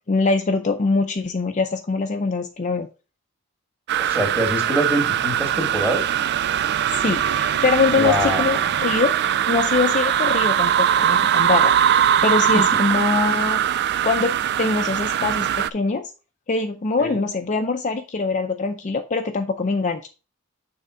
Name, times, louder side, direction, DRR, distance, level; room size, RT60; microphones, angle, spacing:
voice 1, 0.1-2.9 6.9-9.1 9.5-11.7 12.2-13.6 14.0-16.1 16.5-20.1, left 4 dB, 35° left, 5 dB, 0.5 m, -23 dB
sound 1, 3.9-15.7, right 10 dB, 55° right, 0.3 m, -21 dB
voice 2, 4.0-6.0 8.0-8.8 17.0-17.2, equal, 10° right, 0 dB, 2.2 m, -25 dB
6.7 x 3.7 x 4.9 m, 0.32 s
head